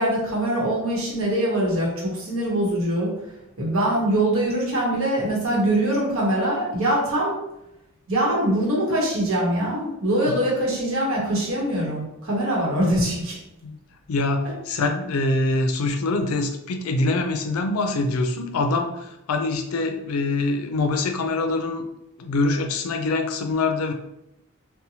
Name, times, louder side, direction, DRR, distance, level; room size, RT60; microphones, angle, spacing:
voice 1, 0.0-3.1 3.6-7.4 8.1-13.4, right 1 dB, 75° right, -3 dB, 0.9 m, -23 dB
voice 2, 14.1-21.8 22.2-23.9, left 2 dB, 90° left, 5 dB, 0.4 m, -24 dB
2.8 x 2.1 x 2.7 m, 0.85 s
head